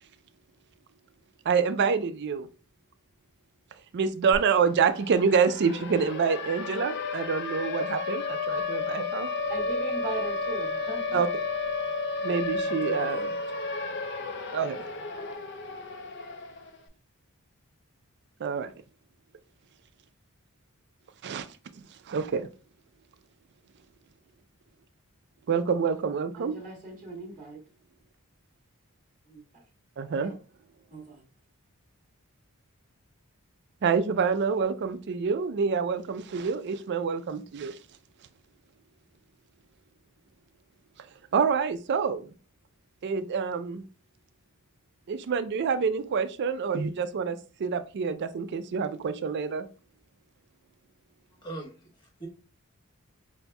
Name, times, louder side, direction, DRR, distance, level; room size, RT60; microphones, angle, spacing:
voice 1, 1.5-2.5 3.9-9.3 11.1-11.3 12.2-13.3 14.5-14.8 18.4-18.7 21.2-21.5 21.7-22.5 25.5-26.5 30.0-30.3 33.8-37.8 41.3-42.3 43.0-43.8 45.1-49.7, right 6 dB, 50° right, 0.4 m, -27 dB
Siren, 4.3-4.4 4.7-16.8, left 4 dB, 50° left, 0.5 m, -32 dB
voice 2, 9.5-11.2 12.6-13.2 26.3-27.6 29.2-29.6 30.2-30.3 30.9-31.2, right 2 dB, 35° right, 1.2 m, -39 dB
voice 3, 51.4-52.3, right 2 dB, 20° left, 1.1 m, -41 dB
5.4 x 2.6 x 2.2 m
head